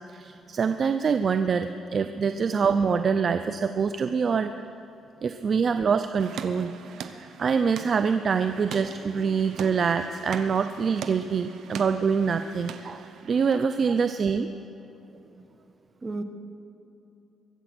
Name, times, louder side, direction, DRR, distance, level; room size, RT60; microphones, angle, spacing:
voice 1, 0.1-4.5 5.2-6.7 7.2-14.5, right 6 dB, 50° right, 9 dB, 0.5 m, -25 dB
sound 1, 6.2-13.6, right 7 dB, 75° right, 0.8 m, -41 dB
voice 2, 15.1-15.5 16.0-16.2, right 2 dB, 30° right, 8 dB, 1.1 m, -36 dB
23.0 x 8.0 x 6.0 m, 2.8 s
cardioid pair, 90°, 0 cm